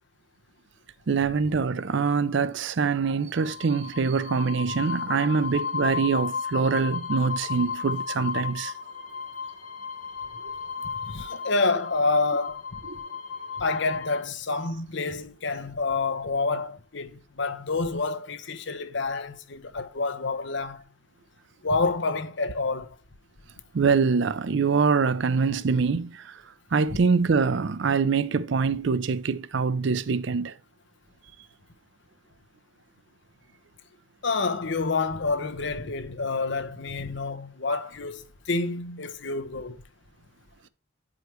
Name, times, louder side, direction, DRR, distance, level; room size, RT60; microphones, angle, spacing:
voice 1, 1.1-8.7 23.7-26.3 26.7-30.5, right 5 dB, 55° right, 0.5 m, -24 dB
sound 1, 3.4-14.2, left 6 dB, 90° left, 1.3 m, -34 dB
voice 2, 11.0-12.6 13.6-20.8 21.6-23.0 34.2-39.8, left 3 dB, 55° left, 0.8 m, -28 dB
9.2 x 4.9 x 3.0 m
head